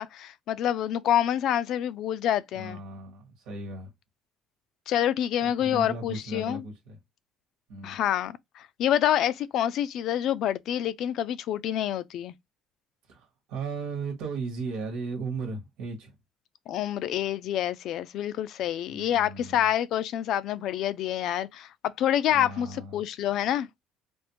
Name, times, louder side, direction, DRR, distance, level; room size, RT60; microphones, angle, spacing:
voice 1, 0.0-2.8 4.9-6.6 7.8-12.3 16.7-23.7, left 11 dB, 60° left, 0.4 m, -27 dB
voice 2, 2.5-3.9 5.4-7.0 7.7-8.0 13.1-16.1 18.9-19.6 22.3-22.9, right 3 dB, 90° right, 1.2 m, -36 dB
3.5 x 2.5 x 2.8 m
cardioid pair, 125°, 0 cm